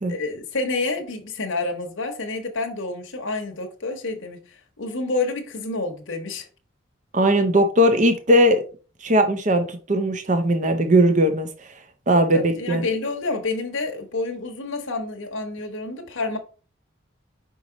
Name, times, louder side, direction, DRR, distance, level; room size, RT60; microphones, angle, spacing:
voice 1, 0.1-6.5 12.3-16.4, left 3 dB, 75° left, 1.0 m, -28 dB
voice 2, 7.1-8.6 9.0-11.7 12.1-12.9, right 1 dB, 35° right, 0.6 m, -19 dB
5.3 x 4.7 x 3.8 m
head